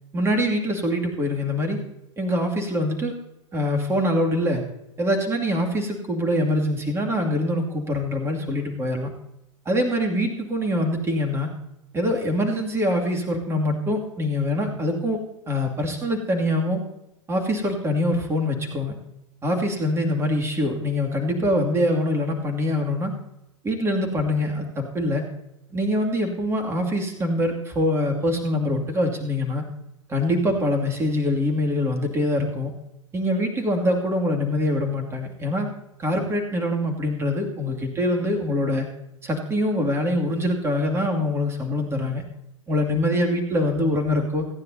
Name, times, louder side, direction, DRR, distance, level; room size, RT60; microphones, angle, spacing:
voice 1, 0.1-1.8 2.2-3.1 3.5-4.6 5.0-9.1 9.7-11.5 11.9-15.2 15.5-16.8 17.3-18.9 19.4-23.1 23.6-25.3 25.7-29.7 30.1-32.7 33.1-35.7 36.0-38.9 39.2-42.2 42.7-44.5, left 1 dB, 15° right, 2 dB, 2.4 m, -24 dB
29.0 x 9.8 x 2.8 m, 0.86 s
figure-of-eight pair, 100°, 16 cm